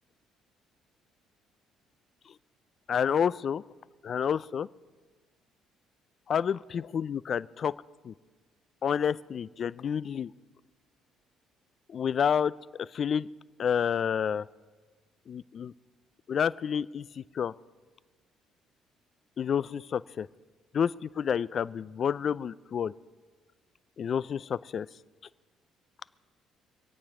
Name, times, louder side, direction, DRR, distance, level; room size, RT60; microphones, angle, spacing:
voice 1, 2.9-3.6 4.0-4.7 6.3-7.7 8.0-8.1 8.8-10.3 11.9-12.5 12.8-13.3 13.6-14.4 15.3-15.7 16.3-17.5 19.4-20.3 20.7-22.9 24.0-24.9, left 7 dB, 55° left, 17 dB, 0.4 m, -29 dB
25.0 x 8.8 x 4.9 m, 1.3 s
hypercardioid pair, 60°, 0 cm